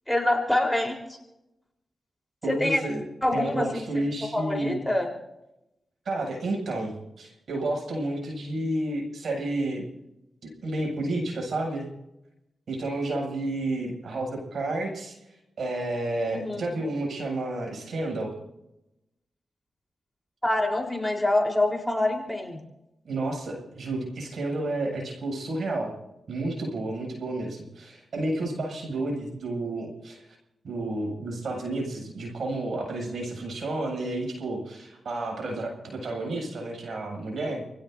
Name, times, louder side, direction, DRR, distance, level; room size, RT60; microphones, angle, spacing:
voice 1, 0.1-1.0 2.5-2.8 3.2-3.9 4.3-5.1 16.3-16.6 20.4-22.6, left 1 dB, 5° left, 1 dB, 4.1 m, -25 dB
voice 2, 2.4-3.0 3.3-4.8 6.0-9.8 10.4-11.9 12.7-18.3 23.0-25.9 26.3-30.4 30.6-37.6, right 2 dB, 75° right, 1 dB, 7.9 m, -31 dB
29.5 x 17.0 x 2.8 m, 0.90 s
cardioid pair, 60°, 0 cm